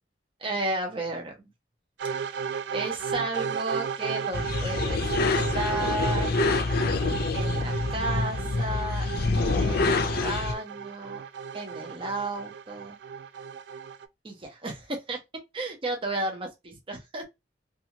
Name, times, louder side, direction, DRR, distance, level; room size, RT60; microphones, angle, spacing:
voice 1, 0.4-1.5 2.2-2.4 2.7-6.3 6.9-9.1 9.6-11.2 11.5-13.0 14.2-15.2 15.5-17.2, right 2 dB, 30° right, 0.6 m, -33 dB
sound 1, 2.0-14.1, right 6 dB, 65° right, 0.3 m, -34 dB
sound 2, 4.3-10.5, left 3 dB, 55° left, 0.4 m, -26 dB
2.6 x 2.4 x 2.8 m
head